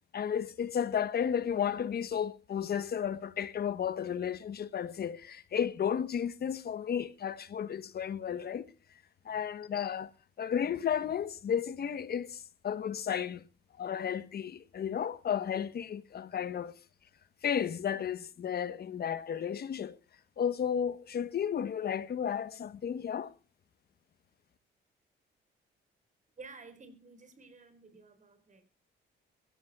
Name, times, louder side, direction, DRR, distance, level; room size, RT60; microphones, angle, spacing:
voice 1, 0.1-8.7 9.2-10.1 10.4-13.4 13.8-16.7 17.4-20.0 20.4-23.3, left 8 dB, 50° left, 1.2 m, -33 dB
voice 2, 26.4-28.7, right 4 dB, 40° right, 4.5 m, -52 dB
23.0 x 15.5 x 2.3 m
cardioid pair, 90°, 20 cm